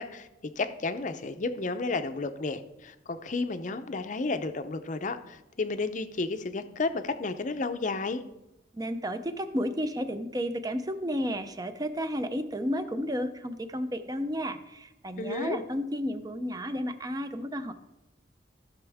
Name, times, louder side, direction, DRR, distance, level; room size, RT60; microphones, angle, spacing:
voice 1, 0.0-8.2 15.2-15.6, left 3 dB, 45° left, 10 dB, 0.6 m, -32 dB
voice 2, 8.7-17.7, equal, 20° right, 10 dB, 0.5 m, -32 dB
15.0 x 6.1 x 3.5 m, 0.93 s
head